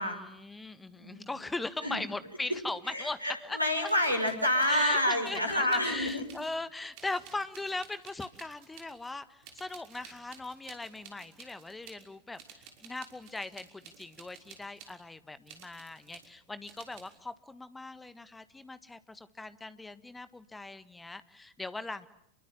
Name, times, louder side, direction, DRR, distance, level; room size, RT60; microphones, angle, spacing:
voice 1, 0.0-3.2 3.4-3.6 4.7-22.1, left 2 dB, 10° left, 14 dB, 1.6 m, -40 dB
voice 2, 1.0-1.3 1.8-2.0 2.9-6.3, left 1 dB, 85° right, 7 dB, 6.0 m, -28 dB
sound 1, 3.1-3.2 3.8-6.7 6.9-9.1 9.4-12.1 12.3-15.0 15.5-16.3 16.6-17.2, right 7 dB, 45° right, 5.7 m, -54 dB
29.0 x 23.0 x 8.9 m, 0.74 s
figure-of-eight pair, 90°, 0 cm